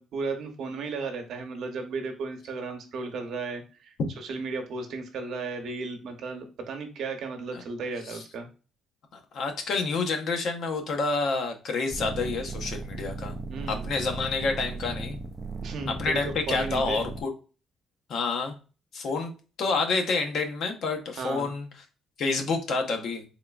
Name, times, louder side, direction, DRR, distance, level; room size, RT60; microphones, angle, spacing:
voice 1, 0.0-8.5 13.5-13.9 15.6-16.2 16.5-17.0 21.2-21.5, right 4 dB, 60° right, 5 dB, 0.9 m, -35 dB
voice 2, 9.1-13.3 13.7-15.2 15.9-17.3 18.1-18.5 18.9-19.3 19.6-21.7 22.2-23.2, left 4 dB, 60° left, 4 dB, 0.8 m, -28 dB
sound 1, 11.9-17.2, right 3 dB, 20° right, 0.4 m, -36 dB
3.7 x 3.2 x 2.4 m, 0.34 s
cardioid pair, 135°, 0 cm